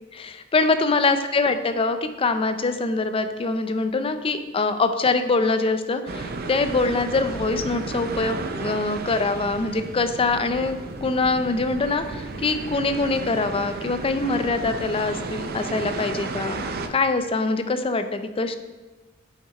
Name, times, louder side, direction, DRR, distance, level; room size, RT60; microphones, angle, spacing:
voice 1, 0.1-16.6 16.9-18.6, left 3 dB, 25° left, 9 dB, 0.4 m, -24 dB
sound 1, 6.1-16.9, right 3 dB, 45° right, 0.5 m, -33 dB
6.3 x 5.8 x 4.2 m, 1.2 s
head